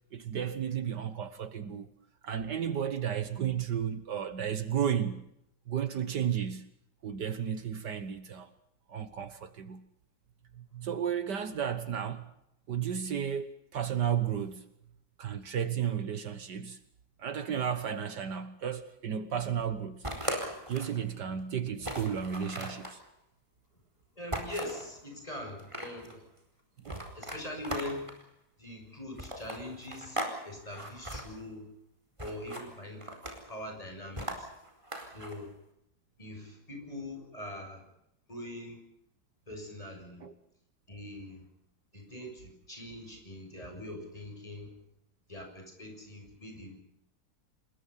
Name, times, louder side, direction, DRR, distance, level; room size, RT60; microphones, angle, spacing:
voice 1, 0.1-1.9 2.2-5.2 5.7-6.7 7.0-8.5 8.9-9.8 10.6-12.3 12.7-14.6 15.2-16.8 17.2-20.0 20.7-23.0 26.9-27.1 40.2-40.3, right 8 dB, 70° right, 1.8 m, -33 dB
sound 1, 20.0-21.0 21.4-21.5 21.8-23.0 24.3-24.9 25.5-26.1 26.8-28.2 29.2-30.4 30.6-31.2 32.2-32.7 33.0-33.5 34.2-35.3, right 1 dB, 15° right, 4.7 m, -38 dB
voice 2, 24.2-26.2 27.2-28.1 28.6-31.7 32.2-33.1 33.5-34.5 35.1-35.5 36.2-37.8 38.3-38.8 39.5-40.2 40.9-41.4 41.9-44.7 45.3-46.8, left 1 dB, 20° left, 7.3 m, -42 dB
28.0 x 21.0 x 5.7 m
omnidirectional pair, 1.9 m